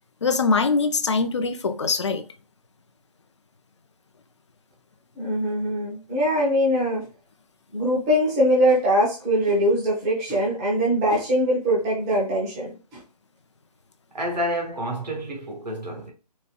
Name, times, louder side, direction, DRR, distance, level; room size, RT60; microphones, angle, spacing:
voice 1, 0.2-2.2, left 4 dB, 45° left, 0.5 m, -22 dB
voice 2, 5.2-7.1 7.7-13.0, equal, 5° right, 0.5 m, -22 dB
voice 3, 14.1-16.1, equal, 85° right, 1.3 m, -29 dB
4.0 x 2.2 x 2.2 m
figure-of-eight pair, 160°, 21 cm